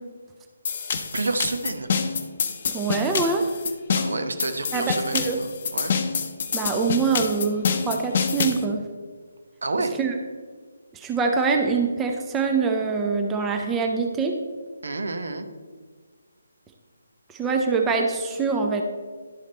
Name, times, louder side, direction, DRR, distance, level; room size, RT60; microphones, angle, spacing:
sound 1, 0.6-8.6, left 6 dB, 40° left, 0.7 m, -27 dB
voice 1, 1.1-1.9 3.9-5.9 9.6-9.9 14.8-15.4, right 3 dB, 60° right, 7 dB, 0.8 m, -29 dB
voice 2, 2.7-3.5 4.7-5.4 6.5-8.8 10.0-10.1 10.9-14.3 17.3-18.8, right 4 dB, 10° right, 2 dB, 0.6 m, -24 dB
11.0 x 5.0 x 4.2 m, 1.5 s
figure-of-eight pair, 145°, 0 cm